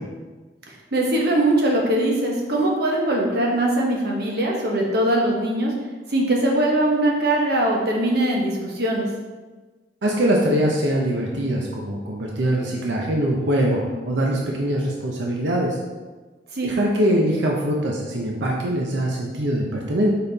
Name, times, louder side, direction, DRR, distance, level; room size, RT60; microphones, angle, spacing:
voice 1, 0.9-5.7 6.1-9.1 16.5-16.7, right 1 dB, 60° right, -1 dB, 1.2 m, -21 dB
voice 2, 10.0-13.8 14.1-15.8 16.6-20.1, right 1 dB, 90° right, -2 dB, 0.8 m, -22 dB
5.4 x 4.3 x 4.0 m, 1.3 s
head